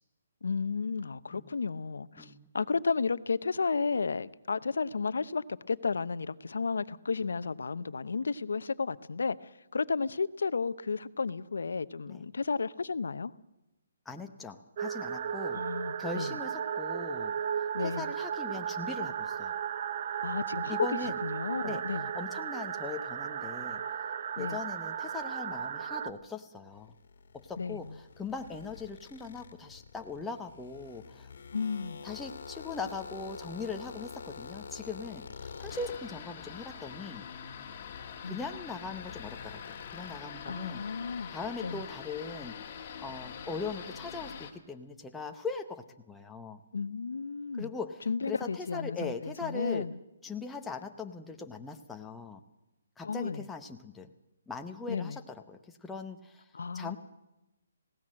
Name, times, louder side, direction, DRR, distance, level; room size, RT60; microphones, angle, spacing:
voice 1, 0.4-13.3 15.5-16.3 17.7-18.1 20.2-20.8 21.2-22.0 24.4-24.6 27.6-27.8 31.5-32.0 38.2-38.4 40.4-41.3 41.6-41.8 46.7-47.7 48.1-49.9 53.0-53.4 54.9-55.2 56.5-57.0, left 4 dB, 85° left, 0.8 m, -33 dB
voice 2, 2.2-2.5 12.1-12.2 14.1-15.6 16.0-17.3 17.8-19.5 20.7-21.2 21.6-23.8 24.4-26.9 27.3-31.3 32.0-37.3 38.2-40.8 41.3-46.6 47.5-49.9 50.2-52.4 53.0-54.1 54.5-56.5 56.7-57.0, left 4 dB, 5° left, 0.8 m, -40 dB
sound 1, 14.8-26.1, right 8 dB, 35° right, 0.7 m, -35 dB
sound 2, 26.7-40.9 41.2-44.6, left 5 dB, 55° left, 1.8 m, -49 dB
sound 3, 35.7-44.5, left 7 dB, 25° left, 1.9 m, -44 dB
19.5 x 17.5 x 7.6 m
hypercardioid pair, 170°, 0 cm